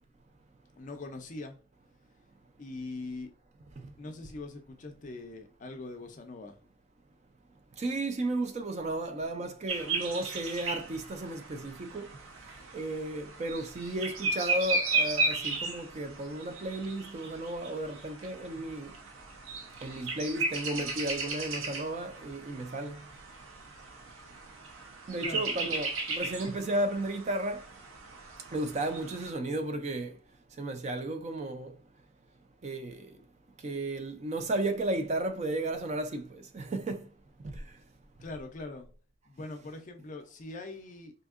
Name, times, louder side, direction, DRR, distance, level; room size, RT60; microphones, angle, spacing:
voice 1, 0.8-1.6 2.6-3.3 4.0-6.6 25.2-25.5 38.2-38.9 39.3-41.1, left 2 dB, 35° left, 0.4 m, -42 dB
voice 2, 7.8-12.1 12.7-18.9 19.8-23.0 25.1-27.6 28.5-30.1 30.6-31.7 32.6-33.0 33.6-37.0 37.4-37.5, right 1 dB, 30° right, 0.3 m, -34 dB
sound 1, 9.7-29.3, right 3 dB, 70° right, 0.6 m, -36 dB
3.4 x 2.7 x 2.4 m
head